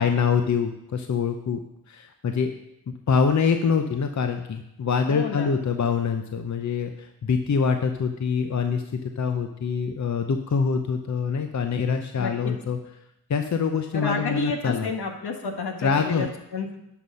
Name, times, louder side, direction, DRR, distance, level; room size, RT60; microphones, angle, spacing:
voice 1, 0.0-1.6 1.9-2.5 2.9-12.8 13.3-14.9 15.8-16.3, left 6 dB, 45° left, 6 dB, 0.8 m, -25 dB
voice 2, 5.1-5.6 12.2-12.5 13.9-16.7, left 4 dB, 70° left, 3 dB, 1.6 m, -30 dB
10.0 x 5.6 x 5.6 m, 0.84 s
cardioid pair, 55°, 41 cm